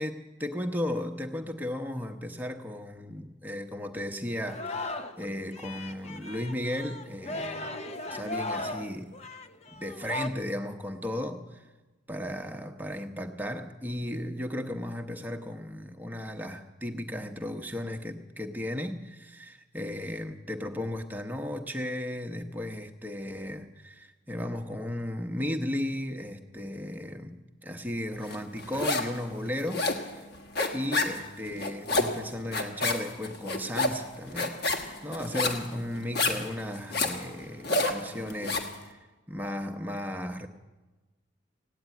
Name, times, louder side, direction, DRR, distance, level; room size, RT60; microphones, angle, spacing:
voice 1, 0.0-7.8 8.1-9.1 9.7-11.6 12.1-30.3 30.7-39.0 39.3-40.5, left 1 dB, 10° right, 4 dB, 0.9 m, -35 dB
Singing, 4.5-5.3 5.5-10.3, left 2 dB, 30° left, 0.7 m, -37 dB
sound 1, 28.3-29.2 29.5-38.8, left 2 dB, 50° left, 1.5 m, -29 dB
16.5 x 9.5 x 9.2 m, 1.2 s
head